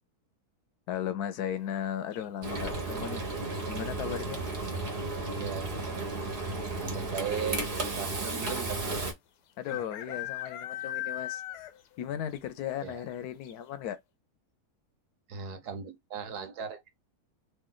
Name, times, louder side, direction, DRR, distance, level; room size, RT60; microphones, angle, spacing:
voice 1, 0.9-3.2 3.7-4.4 9.6-11.4 12.0-14.0, left 10 dB, 75° left, 1.1 m, -36 dB
sound 1, 2.1-2.6 4.4-4.8 5.1-5.2 5.4-5.9 6.7-6.8 7.0-7.1 8.6-8.7 9.7-12.0 12.3-12.4 12.9-13.0 13.4-13.5, left 12 dB, 90° left, 1.2 m, -38 dB
Frying (food), 2.4-9.1, right 2 dB, 40° right, 1.1 m, -33 dB
voice 2, 5.4-5.8 6.8-7.6 8.0-8.9 9.7-9.8 12.8-13.0 15.3-16.8, right 7 dB, 75° right, 1.3 m, -37 dB
3.2 x 2.8 x 3.8 m
omnidirectional pair, 1.7 m